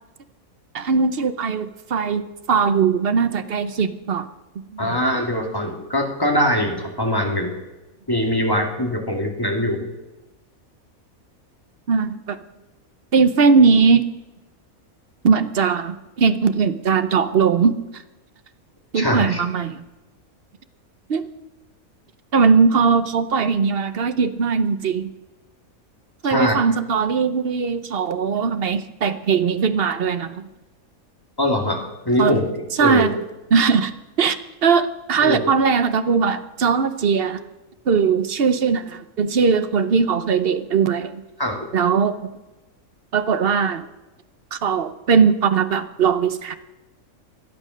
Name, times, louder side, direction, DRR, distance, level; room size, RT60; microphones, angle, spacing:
voice 1, 0.7-2.2 2.5-4.3 4.7-5.0 11.9-12.4 13.1-14.1 15.2-17.7 18.9-19.8 21.1-21.2 22.3-25.1 26.2-30.4 32.2-32.4 32.8-33.2 33.5-33.9 34.2-37.4 37.9-41.2 41.7-42.2 43.1-43.8 44.5-46.5, right 5 dB, 50° right, 11 dB, 0.9 m, -19 dB
voice 2, 4.8-7.5 8.1-9.8 18.9-19.4 26.3-26.6 31.4-31.8 32.1-32.5 32.8-33.1 35.2-35.5 41.4-41.6, equal, 15° left, 1 dB, 2.3 m, -22 dB
24.0 x 8.8 x 6.3 m, 1.1 s
omnidirectional pair, 1.5 m